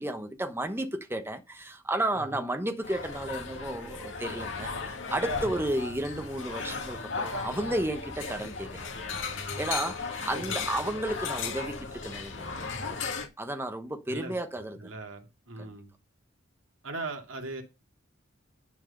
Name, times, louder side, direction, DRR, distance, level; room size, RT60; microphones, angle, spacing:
voice 1, 0.0-14.9 15.6-15.7, right 1 dB, 10° right, 1.1 m, -33 dB
sound 1, 2.8-13.3, left 4 dB, 70° left, 2.4 m, -36 dB
voice 2, 10.3-10.6 14.1-15.9 16.8-17.6, right 2 dB, 80° right, 2.4 m, -39 dB
11.0 x 4.6 x 6.6 m
head